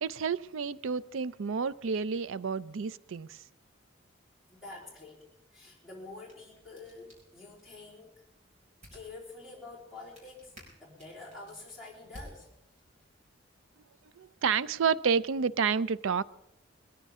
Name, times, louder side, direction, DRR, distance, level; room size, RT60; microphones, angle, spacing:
voice 1, 0.0-3.4 14.2-16.2, right 6 dB, 85° right, 18 dB, 0.5 m, -30 dB
voice 2, 4.5-5.2 5.5-8.2 8.9-12.5, left 3 dB, ahead, -5 dB, 3.8 m, -47 dB
sound 1, 6.0-13.1, equal, 35° right, 5.4 m, -56 dB
21.5 x 14.0 x 3.6 m, 0.91 s
head